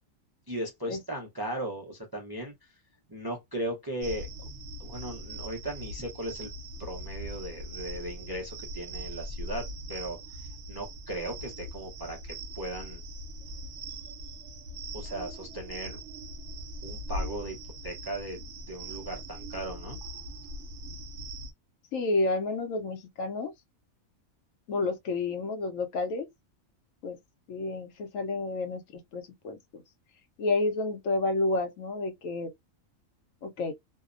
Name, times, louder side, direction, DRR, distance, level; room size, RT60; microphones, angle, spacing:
voice 1, 0.5-2.5 3.1-4.3 4.8-6.5 6.8-10.2 10.7-13.0 14.9-16.0 16.8-17.6 17.8-18.4 18.7-20.0, right 1 dB, 30° right, 0.4 m, -37 dB
sound 1, 4.0-21.5, right 1 dB, 65° right, 0.8 m, -41 dB
voice 2, 21.9-23.5 24.7-26.3 27.0-27.2 27.5-28.8 29.1-29.8 30.4-32.5 33.4-33.7, left 2 dB, 75° left, 1.0 m, -30 dB
2.7 x 2.0 x 2.4 m
omnidirectional pair, 1.4 m